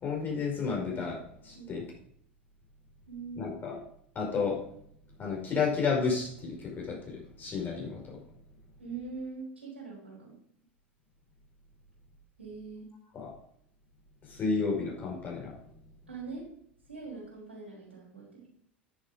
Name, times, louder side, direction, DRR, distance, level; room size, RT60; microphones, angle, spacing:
voice 1, 0.0-1.8 3.4-3.8 4.2-4.6 5.2-8.2 13.1-13.3 14.3-15.5, left 5 dB, 30° left, -2 dB, 5.3 m, -32 dB
voice 2, 3.1-3.5 8.8-10.3 12.4-12.9 16.1-16.5 16.9-18.5, right 4 dB, 85° right, -7 dB, 4.5 m, -42 dB
10.0 x 7.3 x 5.1 m, 0.66 s
figure-of-eight pair, 75°, 6 cm